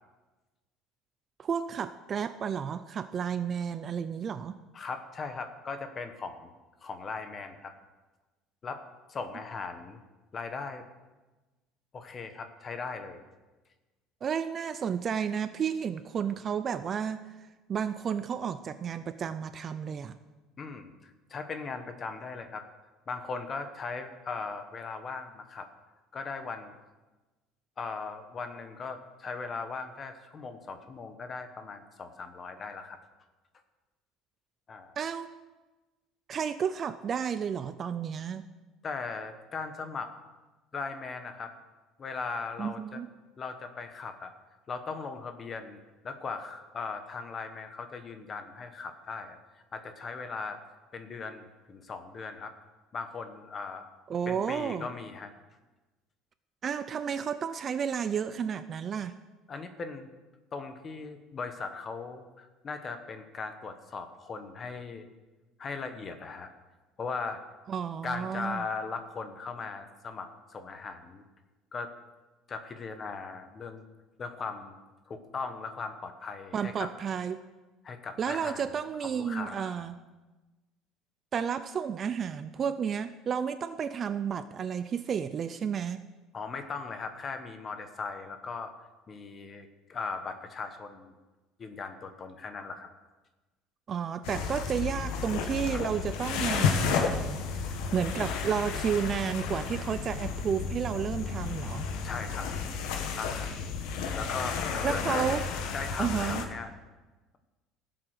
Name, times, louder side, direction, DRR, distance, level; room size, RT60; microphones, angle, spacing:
voice 1, 1.4-4.6 14.2-17.2 17.7-20.2 35.0-35.3 36.3-38.4 42.6-43.1 54.1-54.9 56.6-59.2 67.7-68.6 76.5-77.4 78.2-80.0 81.3-86.0 93.9-97.4 97.9-101.9 104.8-105.4 106.0-106.5, right 7 dB, 25° right, 12 dB, 0.4 m, -32 dB
voice 2, 4.7-6.5 6.8-7.7 8.6-8.8 9.1-10.0 10.3-10.8 11.9-13.3 20.6-22.7 23.1-25.7 26.1-26.7 27.8-33.0 34.7-34.9 38.8-40.1 40.7-41.5 42.0-43.0 43.4-44.3 44.7-45.8 46.0-49.4 49.7-50.6 50.9-52.5 52.9-53.9 54.3-55.3 59.5-60.1 60.5-65.1 65.6-66.5 67.0-67.4 68.0-71.2 71.7-71.9 72.5-73.9 74.2-74.8 75.1-76.9 77.8-78.6 79.0-79.9 86.3-88.7 89.1-91.1 91.6-92.9 95.7-95.9 102.0-102.5 102.9-103.5 104.1-105.4 105.7-106.7, left 4 dB, 25° left, 8 dB, 1.1 m, -38 dB
sound 1, 94.2-106.4, left 6 dB, 90° left, 1.6 m, -32 dB
16.5 x 7.7 x 6.5 m, 1.2 s
cardioid pair, 170°, 0 cm